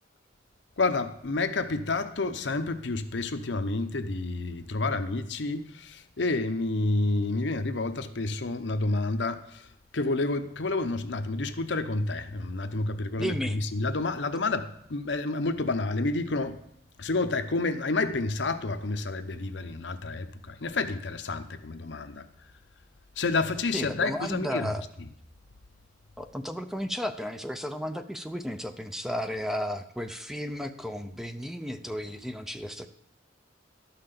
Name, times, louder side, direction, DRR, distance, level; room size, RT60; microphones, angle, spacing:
voice 1, 0.8-9.7 9.9-16.6 17.0-22.3 23.2-24.7, left 3 dB, 65° left, 9 dB, 0.8 m, -29 dB
voice 2, 13.2-13.6 23.7-24.8 26.2-32.9, equal, ahead, 8 dB, 0.5 m, -33 dB
12.5 x 5.8 x 6.7 m, 0.77 s
head